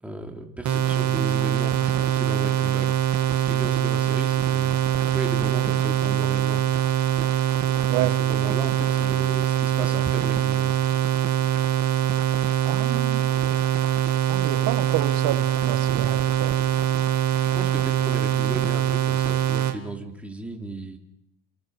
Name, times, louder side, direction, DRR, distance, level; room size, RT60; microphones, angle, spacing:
voice 1, 0.0-2.9 3.3-4.8 5.1-6.6 7.9-10.8 17.4-21.0, right 1 dB, 5° right, 1 dB, 3.0 m, -35 dB
sound 1, 0.7-19.8, right 11 dB, 45° right, 1.9 m, -23 dB
voice 2, 12.6-13.3 14.3-16.6, right 14 dB, 65° right, 10 dB, 1.4 m, -29 dB
30.0 x 28.5 x 4.9 m, 0.80 s
cardioid pair, 165°, 39 cm